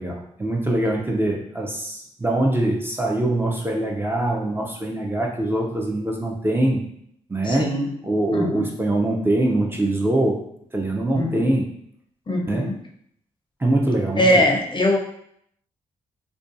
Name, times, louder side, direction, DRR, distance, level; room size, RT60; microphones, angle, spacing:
voice 1, 0.0-6.8 7.3-7.7 8.0-10.4 10.7-11.7 12.5-12.7 13.6-14.3, right 1 dB, 15° right, -1 dB, 0.5 m, -23 dB
voice 2, 7.4-7.9 8.3-8.7 11.2-11.5 12.3-12.8 14.2-15.0, left 1 dB, 35° left, 1 dB, 0.5 m, -21 dB
2.5 x 2.3 x 2.5 m, 0.69 s
supercardioid pair, 50°, 14 cm